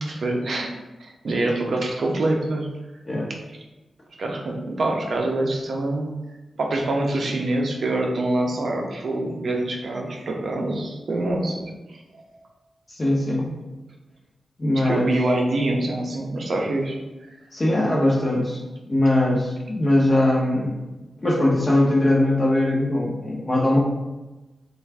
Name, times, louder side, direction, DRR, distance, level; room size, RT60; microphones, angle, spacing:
voice 1, 0.1-0.7 1.0-2.7 4.2-6.2 6.6-12.2 14.8-17.0, right 2 dB, 60° right, 1 dB, 0.5 m, -25 dB
voice 2, 12.9-13.6 14.6-15.1 17.5-18.6 18.9-20.7 21.2-23.8, left 1 dB, 30° left, -4 dB, 0.8 m, -21 dB
3.3 x 2.3 x 3.3 m, 1.1 s
wide cardioid pair, 130°, 0 cm